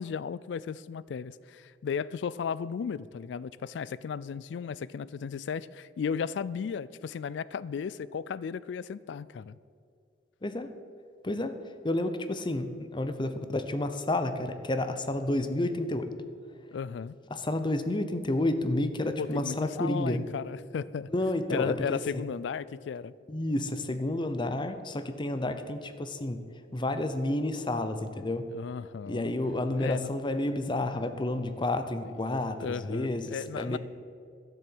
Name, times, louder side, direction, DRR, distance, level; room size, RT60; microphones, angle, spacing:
voice 1, 0.0-9.6 16.7-17.2 19.2-21.1 21.5-23.1 28.5-29.3 29.8-30.1 32.0-32.1 32.6-33.8, left 6 dB, 70° left, 19 dB, 0.3 m, -35 dB
voice 2, 11.8-16.1 17.3-20.2 21.1-22.2 23.3-26.4 26.7-28.4 29.1-33.8, left 1 dB, 25° left, 9 dB, 0.7 m, -30 dB
12.0 x 7.0 x 7.7 m, 2.3 s
head